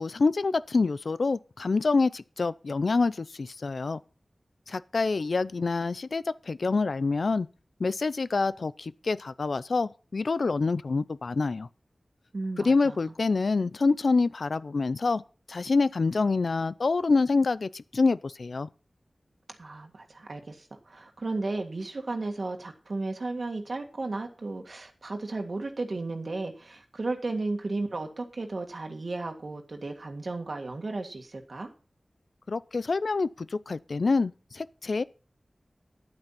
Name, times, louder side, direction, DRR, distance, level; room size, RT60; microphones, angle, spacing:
voice 1, 0.0-4.0 4.7-7.5 7.8-11.7 12.6-15.2 15.5-18.7 32.5-35.0, left 4 dB, 75° left, 0.5 m, -26 dB
voice 2, 12.3-13.0 19.6-31.7, right 3 dB, 65° right, 1.8 m, -34 dB
11.0 x 8.9 x 5.7 m
wide cardioid pair, 70°, 0 cm